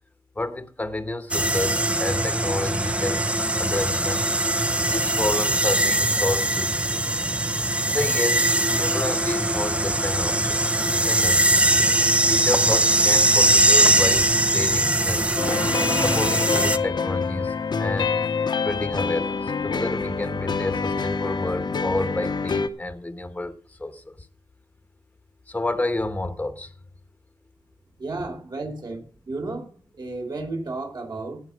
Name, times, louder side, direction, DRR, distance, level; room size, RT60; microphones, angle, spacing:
voice 1, 0.4-3.2 3.6-4.3 4.8-7.0 7.8-10.6 10.9-11.7 12.3-15.5 16.0-18.1 18.6-23.5 23.8-24.1 25.5-26.7, left 2 dB, 15° left, 9 dB, 1.2 m, -30 dB
sound 1, 1.3-16.8, right 1 dB, 15° right, 0.7 m, -21 dB
sound 2, 15.4-22.7, left 5 dB, 60° left, 1.0 m, -26 dB
voice 2, 28.0-29.0 29.3-29.7 29.9-31.4, right 2 dB, 50° right, 2 dB, 4.8 m, -32 dB
17.0 x 5.8 x 6.4 m, 0.41 s
wide cardioid pair, 90°, 9 cm